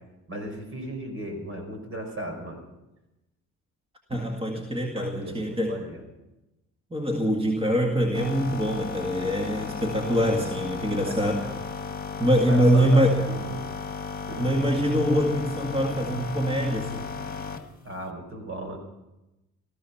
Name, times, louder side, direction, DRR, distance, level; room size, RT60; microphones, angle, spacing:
voice 1, 0.3-2.6 4.5-4.6 4.9-6.0 9.5-9.7 10.4-10.6 11.0-11.1 12.5-13.6 14.3-14.5 17.8-18.8, right 1 dB, 45° right, 4 dB, 5.0 m, -36 dB
voice 2, 4.1-5.8 6.9-11.5 12.2-13.2 14.4-17.0, equal, 20° right, 1 dB, 2.0 m, -24 dB
sound 1, 8.1-17.7, left 5 dB, 30° left, 1.6 m, -35 dB
17.0 x 14.5 x 5.8 m, 0.98 s
cardioid pair, 90°, 30 cm